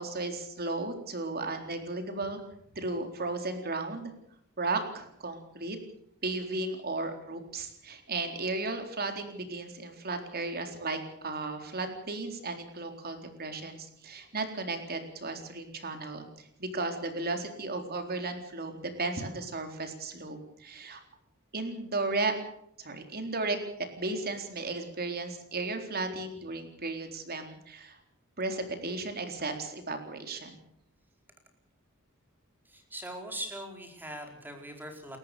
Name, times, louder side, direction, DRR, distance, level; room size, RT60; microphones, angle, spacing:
voice 1, 0.0-2.4 2.7-4.1 4.6-5.8 6.2-21.0 21.5-22.3 22.8-28.0 28.4-30.6, right 3 dB, 45° right, 6 dB, 4.0 m, -35 dB
voice 2, 32.7-35.2, right 1 dB, 10° right, 3 dB, 4.7 m, -41 dB
29.5 x 14.0 x 6.9 m, 0.72 s
head